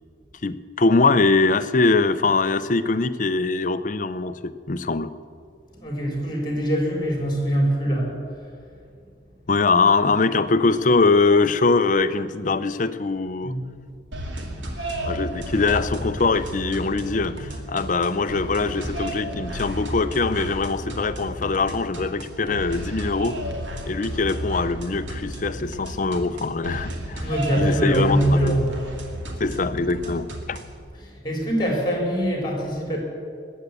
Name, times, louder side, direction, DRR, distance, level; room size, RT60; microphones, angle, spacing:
voice 1, 0.4-5.1 9.5-13.5 15.0-23.4 23.9-28.6 29.4-30.6, left 3 dB, 45° left, 12 dB, 0.6 m, -22 dB
voice 2, 5.8-8.1 13.4-13.6 27.2-28.7 31.0-33.0, right 1 dB, 25° left, 0 dB, 4.1 m, -23 dB
sound 1, 14.1-30.8, right 1 dB, 85° right, 2.3 m, -33 dB
20.5 x 8.2 x 8.2 m, 2.3 s
head